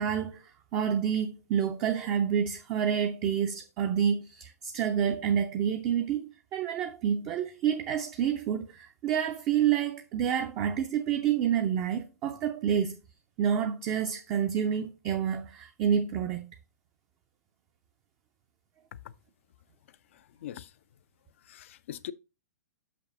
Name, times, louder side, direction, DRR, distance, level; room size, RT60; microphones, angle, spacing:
voice 1, 0.0-13.0 13.4-16.5, right 8 dB, 25° right, 0.6 m, -28 dB
voice 2, 19.9-20.7 21.4-22.1, left 11 dB, 45° left, 0.4 m, -43 dB
6.4 x 5.9 x 3.7 m
figure-of-eight pair, 110°, 9 cm